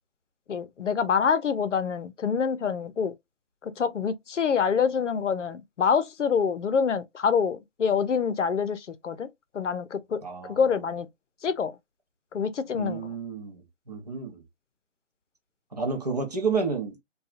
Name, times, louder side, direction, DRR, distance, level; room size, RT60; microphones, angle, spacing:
voice 1, 0.5-3.1 3.6-9.3 9.5-10.2 10.5-11.1 11.4-11.7 12.3-13.1, left 6 dB, 70° left, 0.6 m, -26 dB
voice 2, 10.2-10.6 12.7-13.6 13.9-14.4 15.7-17.0, right 4 dB, 35° right, 0.6 m, -30 dB
2.7 x 2.3 x 2.4 m
figure-of-eight pair, 160°, 37 cm